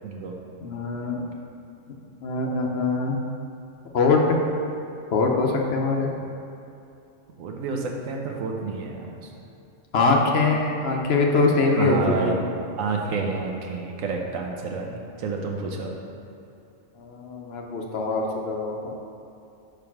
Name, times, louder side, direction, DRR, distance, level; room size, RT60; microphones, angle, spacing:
voice 1, 0.0-0.4 7.4-9.3 11.7-12.4 12.8-16.0, right 4 dB, 90° right, 1 dB, 1.1 m, -29 dB
voice 2, 0.6-1.2 2.2-3.2 3.9-4.4 5.1-6.1 9.9-12.5 17.0-18.9, left 3 dB, 60° left, 1 dB, 0.8 m, -23 dB
5.1 x 4.7 x 5.8 m, 2.7 s
omnidirectional pair, 1.4 m